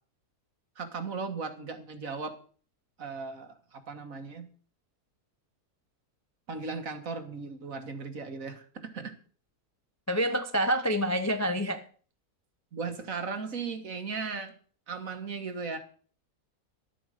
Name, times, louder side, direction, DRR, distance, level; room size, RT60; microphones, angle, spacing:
voice 1, 0.8-2.4 3.0-4.5 6.5-9.2 12.7-14.6 14.9-15.8, right 4 dB, 60° right, 1.9 m, -37 dB
voice 2, 10.1-11.8, equal, 20° left, 0.4 m, -27 dB
12.0 x 8.5 x 6.5 m
omnidirectional pair, 1.6 m